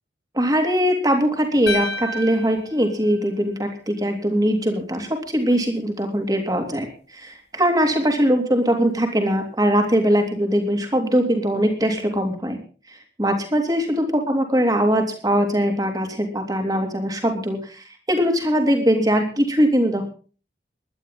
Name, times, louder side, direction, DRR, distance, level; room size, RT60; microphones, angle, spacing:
voice 1, 0.3-6.9 7.1-12.6 12.9-20.1, equal, 20° right, 4 dB, 3.3 m, -21 dB
sound 1, 1.7-3.9, left 1 dB, 70° left, 2.2 m, -31 dB
20.0 x 12.0 x 3.8 m, 0.38 s
head